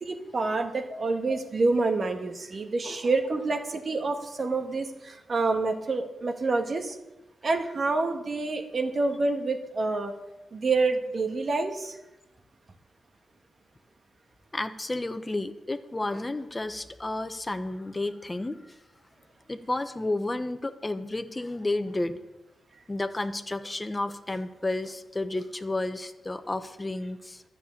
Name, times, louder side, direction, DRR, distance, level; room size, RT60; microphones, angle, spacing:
voice 1, 0.0-7.0 7.4-10.1 10.5-12.0, right 3 dB, 50° right, 5 dB, 1.6 m, -27 dB
voice 2, 14.5-18.6 19.5-22.2 22.9-27.4, left 2 dB, 25° left, 9 dB, 1.0 m, -31 dB
11.5 x 6.9 x 8.4 m, 0.98 s
supercardioid pair, 45°, 0 cm